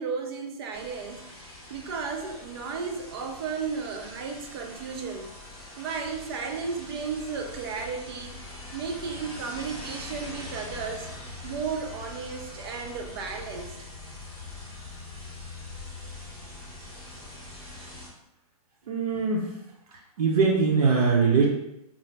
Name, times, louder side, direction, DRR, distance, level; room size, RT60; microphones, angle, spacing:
voice 1, 0.0-5.3 5.8-8.4 8.7-11.1 11.4-13.8, right 5 dB, 40° right, 4 dB, 0.4 m, -34 dB
sound 1, 0.7-18.1, left 2 dB, 5° left, 0.7 m, -43 dB
voice 2, 18.9-19.6 20.2-21.4, right 5 dB, 75° right, -2 dB, 0.7 m, -22 dB
2.5 x 2.0 x 3.1 m, 0.82 s
hypercardioid pair, 155°, 20 cm